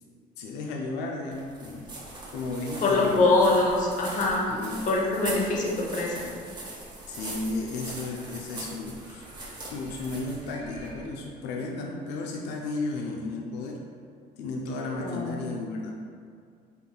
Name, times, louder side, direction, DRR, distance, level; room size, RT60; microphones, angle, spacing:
voice 1, 0.4-1.9 2.3-3.3 4.5-4.8 7.1-9.2 9.7-13.8 14.4-15.9, left 2 dB, 85° left, 0 dB, 0.4 m, -34 dB
sound 1, 1.3-11.2, right 2 dB, 25° right, 0.8 m, -41 dB
voice 2, 2.8-4.4 4.9-6.3 15.0-15.3, left 2 dB, 50° left, -2 dB, 0.8 m, -24 dB
3.6 x 3.6 x 2.3 m, 2.2 s
cardioid pair, 110°, 17 cm